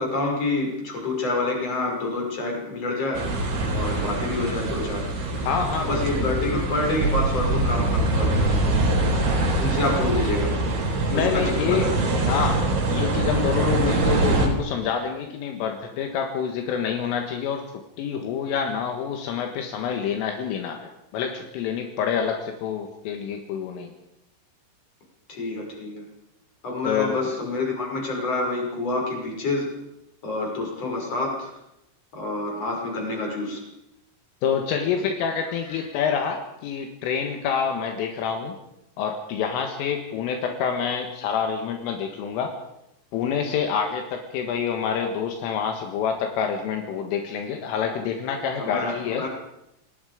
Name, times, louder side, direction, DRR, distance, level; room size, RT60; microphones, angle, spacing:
voice 1, 0.0-3.3 3.7-5.1 5.8-8.9 9.6-10.5 11.1-12.2 25.3-26.0 26.6-29.8 30.2-31.5 32.1-33.6 35.7-35.8 48.6-49.3, left 2 dB, 30° left, 0 dB, 6.8 m, -28 dB
sound 1, 3.1-14.5, right 2 dB, 65° right, 6.8 m, -24 dB
voice 2, 5.4-6.6 11.1-11.9 12.3-12.6 12.9-17.7 18.0-23.9 26.8-27.3 34.4-38.6 39.0-42.5 43.1-49.3, left 7 dB, 75° left, 3 dB, 4.1 m, -27 dB
28.0 x 19.0 x 5.2 m, 0.85 s
omnidirectional pair, 5.9 m